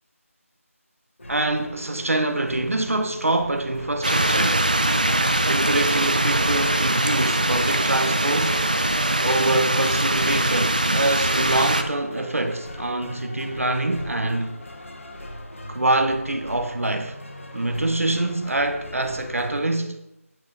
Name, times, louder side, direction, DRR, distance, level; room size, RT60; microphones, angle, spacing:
sound 1, 1.2-19.8, left 1 dB, 60° left, 1.3 m, -40 dB
voice 1, 1.3-4.7 5.5-8.7 9.2-14.6 15.7-17.2 17.5-20.0, right 2 dB, 65° right, 0.9 m, -25 dB
sound 2, 4.0-11.8, right 1 dB, 35° right, 0.5 m, -22 dB
8.7 x 8.6 x 2.6 m
figure-of-eight pair, 180°, 8 cm